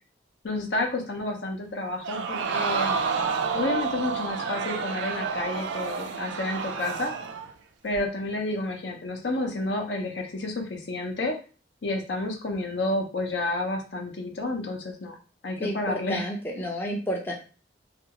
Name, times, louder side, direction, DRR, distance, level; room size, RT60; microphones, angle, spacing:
voice 1, 0.4-3.0 3.5-7.1 7.8-11.4 11.8-15.2 15.4-16.2, left 2 dB, 75° left, 2 dB, 0.7 m, -30 dB
Crowd, 2.0-7.5 7.9-8.0, right 5 dB, 80° right, 0.3 m, -29 dB
voice 2, 15.6-17.3, equal, 10° left, 0 dB, 0.4 m, -30 dB
2.5 x 2.3 x 2.9 m, 0.36 s
head